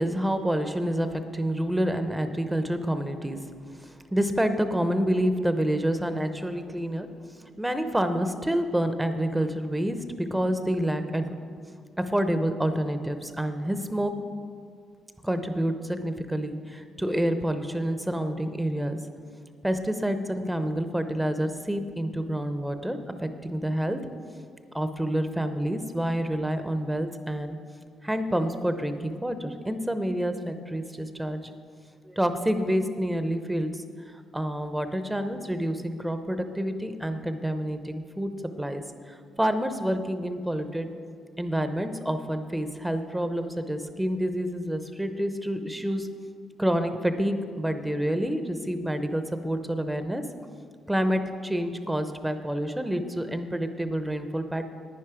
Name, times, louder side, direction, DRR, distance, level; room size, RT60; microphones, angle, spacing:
voice 1, 0.0-3.4 3.8-7.1 7.6-11.3 12.1-14.1 15.2-19.0 19.6-24.0 24.7-27.6 28.0-31.4 32.0-33.8 34.1-38.3 38.6-40.9 41.4-46.1 46.6-50.2 50.9-54.7, equal, 10° right, 9 dB, 0.7 m, -28 dB
10.5 x 9.5 x 4.9 m, 2.1 s
cardioid pair, 90°, 0 cm